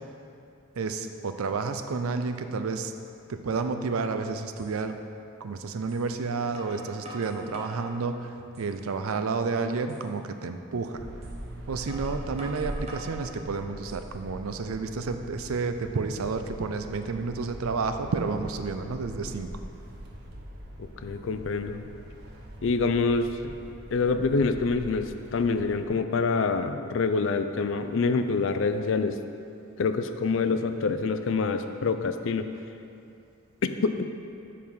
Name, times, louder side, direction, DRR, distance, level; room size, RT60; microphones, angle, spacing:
voice 1, 0.8-2.9 3.3-5.0 5.4-11.1 11.7-19.6, right 4 dB, 90° right, 8 dB, 0.5 m, -30 dB
sound 1, 4.6-4.7 5.9-6.0 6.5-7.9 8.4-8.9 9.3-9.4 9.9-10.1 11.2-11.4 11.9-13.2 13.7-14.3, right 2 dB, 30° right, 1.1 m, -44 dB
sound 2, 10.9-25.9, right 1 dB, 50° right, 0.8 m, -42 dB
voice 2, 21.0-21.9 22.6-23.5 23.9-29.2 29.8-32.5 33.6-33.9, left 4 dB, 65° left, 9 dB, 0.4 m, -26 dB
7.1 x 4.7 x 5.5 m, 2.6 s
head